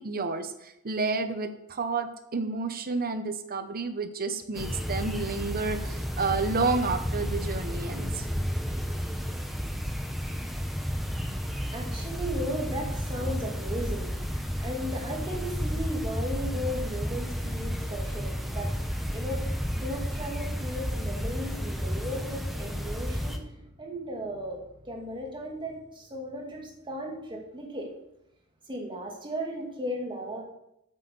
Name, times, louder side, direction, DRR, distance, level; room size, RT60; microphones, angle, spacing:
voice 1, 0.0-8.3, right 4 dB, 40° right, 9 dB, 0.8 m, -30 dB
sound 1, 4.5-23.4, equal, ahead, 1.1 m, -32 dB
voice 2, 11.0-27.9 28.7-30.4, equal, 20° right, 0 dB, 2.5 m, -36 dB
8.4 x 8.3 x 6.9 m, 0.82 s
head